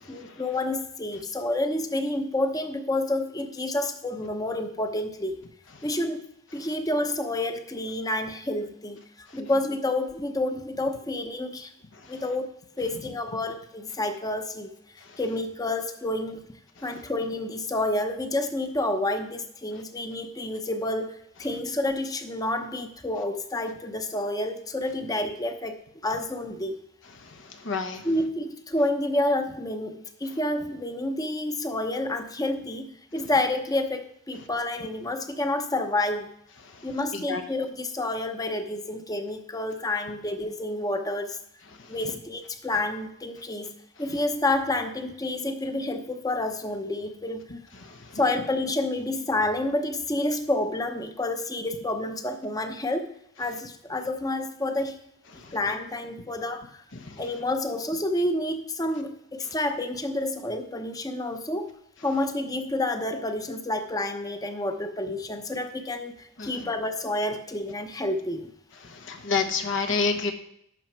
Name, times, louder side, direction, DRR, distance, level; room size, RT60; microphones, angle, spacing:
voice 1, 0.1-5.4 5.8-6.2 6.5-11.7 12.1-12.5 12.8-16.4 16.8-25.7 26.0-26.8 28.0-36.3 36.8-41.4 41.9-43.7 44.0-47.4 48.1-53.1 53.4-55.0 55.5-56.8 57.2-61.7 62.0-68.5, left 1 dB, 20° left, 7 dB, 0.8 m, -29 dB
voice 2, 27.6-28.0 37.1-37.4 47.8-48.0 57.0-57.1 66.4-66.5 68.8-70.3, left 4 dB, 65° left, 6 dB, 1.0 m, -28 dB
11.5 x 6.3 x 4.5 m, 0.74 s
head